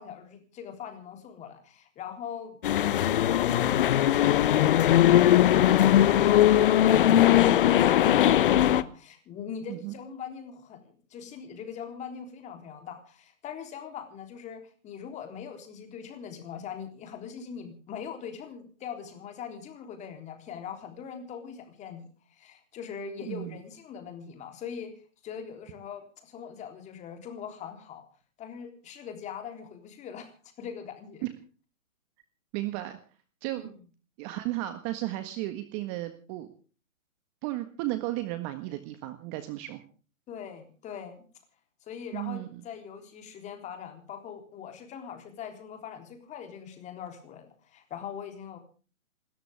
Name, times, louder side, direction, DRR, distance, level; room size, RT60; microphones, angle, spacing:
voice 1, 0.0-2.6 3.2-24.9 25.2-28.0 28.4-30.3 30.6-31.3 33.6-33.7 40.3-41.2 41.9-48.6, left 7 dB, 15° left, 6 dB, 3.5 m, -41 dB
sound 1, 2.6-8.8, left 12 dB, 40° left, 1.0 m, -20 dB
voice 2, 23.3-23.6 31.2-31.3 32.5-33.0 33.4-33.7 34.2-36.5 37.4-39.8 42.1-42.6, right 16 dB, 25° right, 10 dB, 1.6 m, -34 dB
28.0 x 13.5 x 3.5 m, 0.38 s
hypercardioid pair, 140°, 40 cm